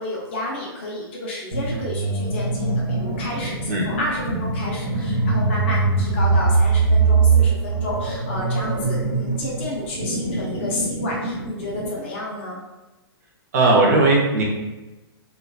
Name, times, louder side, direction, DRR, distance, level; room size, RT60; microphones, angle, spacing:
voice 1, 0.0-12.6, left 1 dB, 25° left, -4 dB, 0.4 m, -31 dB
sound 1, 1.5-12.0, right 4 dB, 85° right, 0.9 m, -22 dB
voice 2, 13.5-14.4, right 2 dB, 40° right, -2 dB, 0.6 m, -17 dB
2.5 x 2.2 x 2.2 m, 1.1 s
hypercardioid pair, 170°, 13 cm